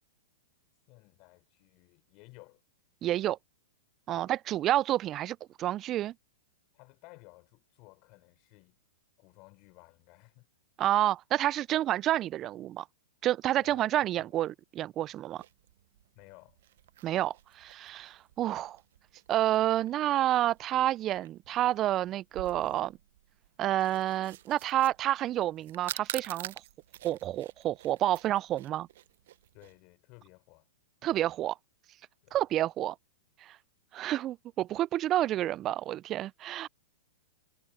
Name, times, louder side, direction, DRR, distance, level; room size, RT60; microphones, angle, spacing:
voice 1, 0.9-2.6 4.1-4.3 6.7-8.8 9.2-10.5 13.6-14.3 16.1-16.6 29.5-30.7 32.2-32.5, left 27 dB, 45° left, 4.4 m, -56 dB
voice 2, 3.0-3.4 4.1-6.1 10.8-12.9 13.2-15.4 17.0-18.8 19.3-23.0 23.6-26.5 27.0-28.9 31.0-31.6 32.3-32.9 33.4-33.6 33.9-36.7, right 13 dB, 30° right, 0.5 m, -29 dB
sound 1, 15.4-29.8, right 13 dB, 65° right, 1.0 m, -48 dB
hypercardioid pair, 110°, 0 cm